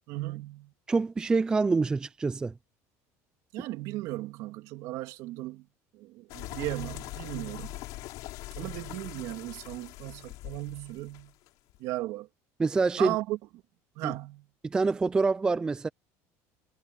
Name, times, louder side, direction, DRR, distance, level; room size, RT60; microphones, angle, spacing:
voice 1, 0.1-0.7 3.5-5.7 5.9-7.8 8.5-11.3 11.8-12.3 13.0-13.4 14.0-14.5, right 18 dB, 60° right, 2.7 m, -36 dB
voice 2, 0.9-2.5 12.6-13.2 14.0-14.1 14.6-15.9, right 4 dB, 10° right, 0.4 m, -26 dB
sound 1, 6.3-11.8, left 19 dB, 60° left, 4.9 m, -42 dB
cardioid pair, 165°, 7 cm